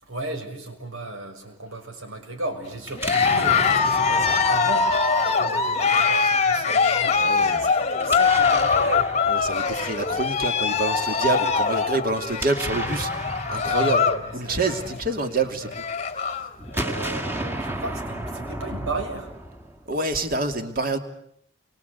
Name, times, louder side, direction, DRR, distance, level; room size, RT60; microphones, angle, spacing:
voice 1, 0.0-9.1 9.7-9.8 13.7-15.7 16.7-19.3, right 2 dB, 80° right, 4 dB, 6.4 m, -35 dB
Explosion, 2.8-5.9 8.0-10.2 12.1-15.5 16.6-20.0, right 1 dB, 10° right, 1.9 m, -34 dB
Cheering, 3.0-14.2 14.5-15.0 15.4-15.5 15.7-16.5, left 5 dB, 30° left, 1.2 m, -22 dB
voice 2, 7.1-7.6 9.3-13.1 13.5-14.0 14.3-15.8 19.9-21.0, right 2 dB, 45° right, 6 dB, 2.6 m, -27 dB
30.0 x 24.5 x 8.3 m, 0.70 s
head